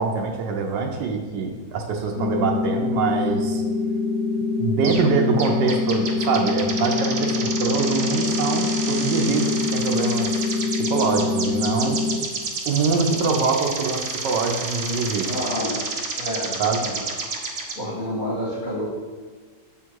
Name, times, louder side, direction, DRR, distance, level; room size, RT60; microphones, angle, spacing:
voice 1, 0.0-3.6 4.6-10.4 10.7-12.0 12.7-15.3 16.6-16.8, right 4 dB, 75° right, 3 dB, 1.2 m, -24 dB
sound 1, 2.2-12.2, left 4 dB, 60° left, 0.7 m, -25 dB
sound 2, 4.8-5.1 5.4-17.8, right 4 dB, 55° right, 0.8 m, -30 dB
voice 2, 15.3-15.8 16.2-17.0 17.8-18.9, left 1 dB, 30° left, -6 dB, 1.5 m, -29 dB
7.1 x 3.6 x 4.5 m, 1.5 s
omnidirectional pair, 1.9 m